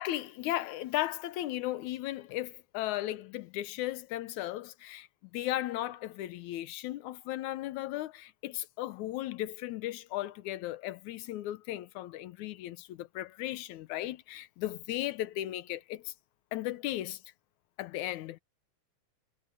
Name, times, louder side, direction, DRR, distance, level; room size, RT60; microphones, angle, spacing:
voice 1, 0.0-5.1 5.3-16.1 16.5-17.2 17.8-18.4, left 15 dB, 80° left, 2.3 m, -36 dB
omnidirectional pair, 3.3 m